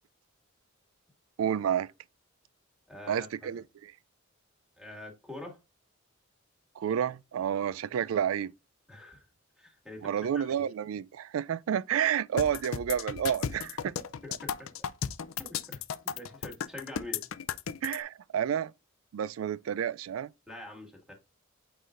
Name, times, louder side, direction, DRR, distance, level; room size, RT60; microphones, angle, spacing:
voice 1, 1.4-1.9 3.1-3.9 6.8-8.5 10.0-13.9 17.8-18.7 19.1-20.3, right 9 dB, 75° right, 0.3 m, -30 dB
voice 2, 2.9-3.5 4.8-5.6 8.9-9.3 9.6-10.6 14.2-14.7 15.4-17.3 20.5-21.1, left 1 dB, 5° right, 1.9 m, -45 dB
sound 1, 12.4-18.0, left 8 dB, 70° left, 0.5 m, -35 dB
7.7 x 4.8 x 2.5 m
head